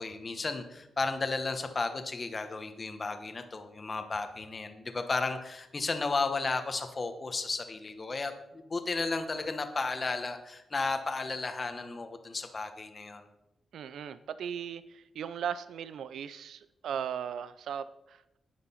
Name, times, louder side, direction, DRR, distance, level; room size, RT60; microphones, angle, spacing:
voice 1, 0.0-13.2, left 3 dB, 30° left, 8 dB, 1.1 m, -34 dB
voice 2, 13.7-18.2, right 8 dB, 90° right, 15 dB, 0.4 m, -37 dB
9.7 x 9.7 x 5.6 m, 0.90 s
wide cardioid pair, 145°, 0 cm